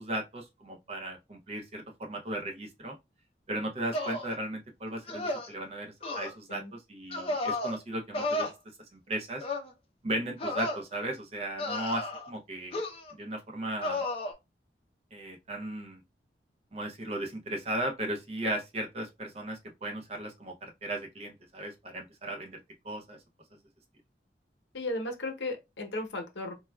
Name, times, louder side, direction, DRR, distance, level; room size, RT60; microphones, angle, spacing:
voice 1, 0.0-2.9 3.5-8.5 8.9-9.4 10.0-12.8 13.1-14.0 15.1-16.0 16.7-22.6 22.8-23.2, right 1 dB, 35° right, 0.5 m, -36 dB
sound 1, 3.9-4.3 5.1-5.5 6.0-6.3 7.1-7.8 8.1-8.5 9.4-9.7 10.4-10.8 11.6-12.3 12.7-13.1 13.8-14.3, left 1 dB, 35° left, 0.6 m, -33 dB
voice 2, 24.7-26.5, left 2 dB, 85° left, 0.8 m, -35 dB
4.1 x 2.3 x 2.2 m
head